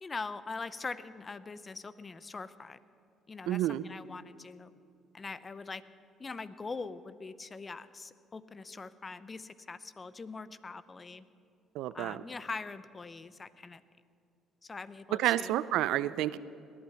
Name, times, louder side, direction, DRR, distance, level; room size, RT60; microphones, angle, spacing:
voice 1, 0.0-2.8 3.3-4.7 5.1-5.8 6.2-11.2 11.9-13.8 14.6-15.5, left 4 dB, 30° left, 15 dB, 0.7 m, -42 dB
voice 2, 3.5-3.8 11.8-12.2 15.2-16.4, right 13 dB, 75° right, 16 dB, 0.4 m, -29 dB
19.5 x 11.0 x 5.8 m, 2.5 s
supercardioid pair, 65°, 0 cm